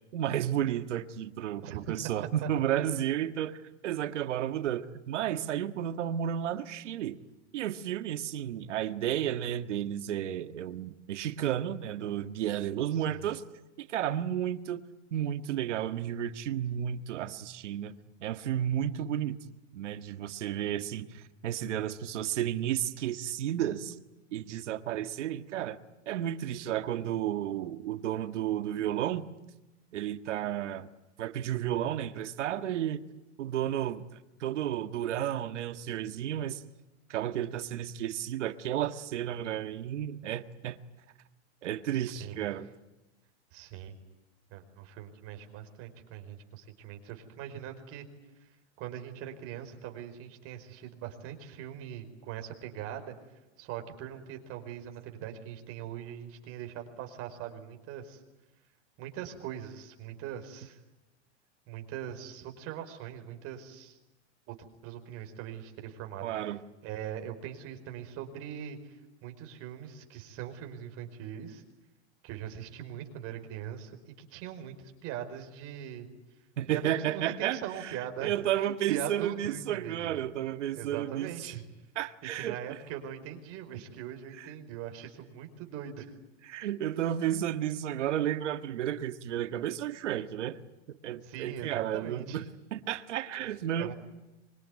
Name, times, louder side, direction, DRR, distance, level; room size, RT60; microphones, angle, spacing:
voice 1, 0.1-3.6 3.8-7.2 7.5-13.4 13.8-14.8 15.1-17.9 18.2-19.4 19.7-23.9 24.3-25.8 26.0-29.3 29.9-30.9 31.2-33.0 33.4-34.0 34.4-36.6 37.1-40.8 41.6-42.7 66.2-66.6 76.6-81.3 81.9-82.8 84.4-84.5 86.5-90.6 90.9-92.4 92.7-93.9, right 11 dB, 90° right, 10 dB, 1.7 m, -32 dB
voice 2, 12.9-13.3 41.9-42.4 43.5-43.9 44.5-48.0 48.3-53.1 53.6-58.2 59.0-60.8 61.7-64.0 64.5-64.6 64.8-66.3 66.8-71.6 72.2-76.1 76.7-78.3 78.8-80.2 80.8-81.6 82.3-86.1 91.2-92.4 93.7-93.9, right 10 dB, 40° right, 4 dB, 5.0 m, -41 dB
25.5 x 23.5 x 9.7 m, 1.0 s
supercardioid pair, 145°, 35 cm